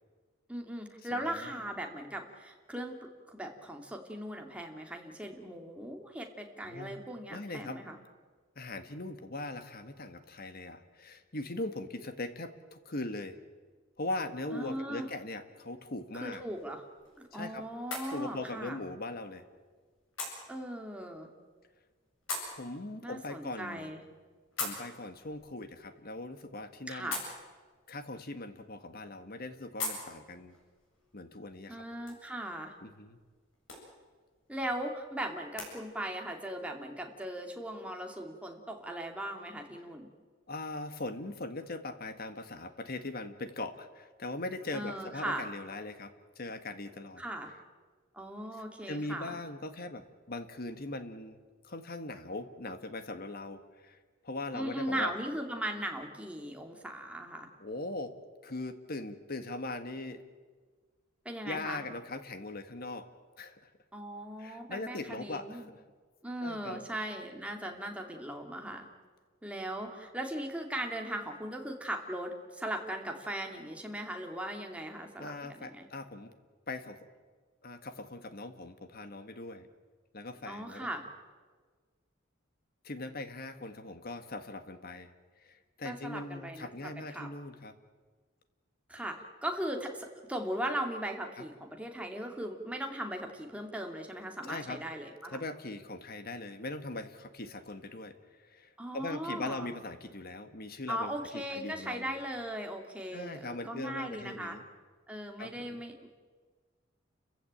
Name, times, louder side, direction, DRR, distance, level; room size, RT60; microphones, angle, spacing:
voice 1, 0.5-8.0 14.5-15.1 16.1-16.8 17.2-18.8 20.5-21.3 23.0-24.0 26.9-27.2 31.7-32.7 34.5-40.1 44.7-45.5 47.2-47.5 48.1-49.4 54.5-57.5 61.2-61.8 63.9-65.7 66.2-68.9 69.4-75.9 80.5-81.1 85.8-87.3 88.9-95.4 98.8-99.7 100.9-104.6 105.1-106.1, right 1 dB, 5° right, 2 dB, 2.5 m, -38 dB
voice 2, 1.1-1.6 6.6-7.0 7.3-7.8 8.5-13.4 14.0-16.4 17.3-17.6 18.1-19.4 22.5-24.0 24.6-27.1 27.9-30.5 31.1-32.0 32.8-33.2 40.5-47.2 48.9-51.4 51.6-54.0 54.2-55.1 57.6-58.2 58.4-60.2 61.4-63.1 63.4-63.7 64.4-65.8 66.4-66.8 75.2-76.3 76.7-77.0 77.6-79.7 80.1-80.9 82.8-85.1 85.4-87.7 91.4-91.5 94.5-94.8 95.3-102.2 103.1-104.7 105.4-105.8, left 2 dB, 50° left, 9 dB, 1.6 m, -40 dB
sound 1, 16.2-35.7, left 3 dB, 65° left, 7.9 m, -46 dB
30.0 x 15.5 x 8.9 m, 1.5 s
head